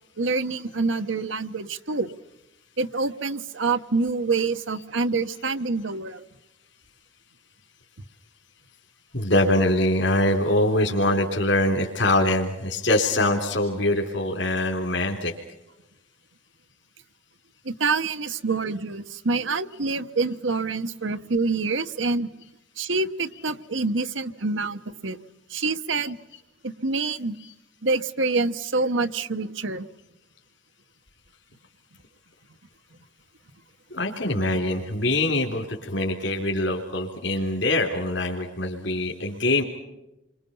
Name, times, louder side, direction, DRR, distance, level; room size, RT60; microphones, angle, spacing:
voice 1, 0.2-2.1 2.8-6.2 17.6-22.3 22.8-25.2 25.5-26.2 26.6-27.4 27.8-29.9, right 3 dB, 80° right, 9 dB, 1.1 m, -26 dB
voice 2, 9.1-15.3 26.3-26.4 27.4-27.5 33.9-39.6, left 1 dB, 70° left, 1 dB, 3.5 m, -23 dB
29.5 x 25.0 x 5.5 m, 0.96 s
head